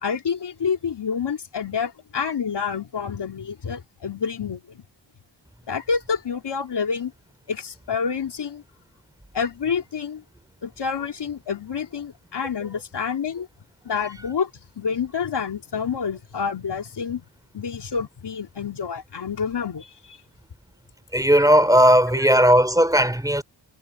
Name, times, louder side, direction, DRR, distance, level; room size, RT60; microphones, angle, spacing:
voice 1, 0.0-4.8 5.7-7.1 7.5-8.6 9.3-10.2 10.6-13.5 13.8-14.5 14.8-17.2 17.5-20.2 22.1-22.3, left 6 dB, 70° left, 3.1 m, -28 dB
voice 2, 21.1-23.4, equal, 10° right, 3.5 m, -16 dB
wide cardioid pair, 95°, 43 cm